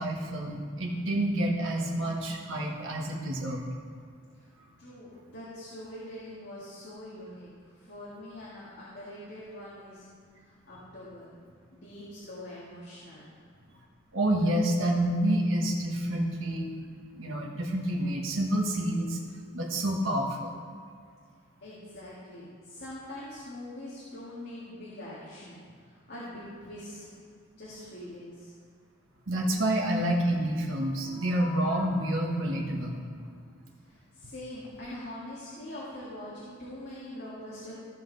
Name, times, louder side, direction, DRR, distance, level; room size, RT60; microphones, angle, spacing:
voice 1, 0.0-3.6 14.1-16.7 17.1-19.2 19.5-20.5 29.3-33.0, right 1 dB, 80° right, -1 dB, 1.3 m, -28 dB
voice 2, 4.8-10.1 10.4-11.3 11.7-13.3 21.6-27.1 27.6-28.5 33.8-37.7, left 1 dB, 55° left, -8 dB, 1.9 m, -43 dB
15.0 x 5.6 x 4.0 m, 2.1 s
head